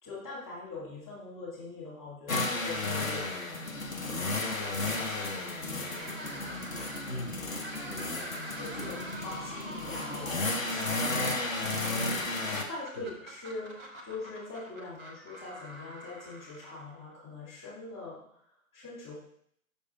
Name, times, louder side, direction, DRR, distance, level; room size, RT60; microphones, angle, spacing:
voice 1, 0.0-3.4 4.0-6.4 8.6-9.0 9.2-18.2 18.7-19.2, left 3 dB, 15° left, -7 dB, 2.0 m, -43 dB
sound 1, 2.3-12.6, left 2 dB, 65° left, 1.1 m, -33 dB
sound 2, 5.9-17.1, right 1 dB, 15° right, 0.6 m, -45 dB
voice 2, 7.1-9.4 12.9-13.1, left 1 dB, 85° left, -4 dB, 2.5 m, -45 dB
5.7 x 4.9 x 3.5 m, 0.69 s
figure-of-eight pair, 135°, 42 cm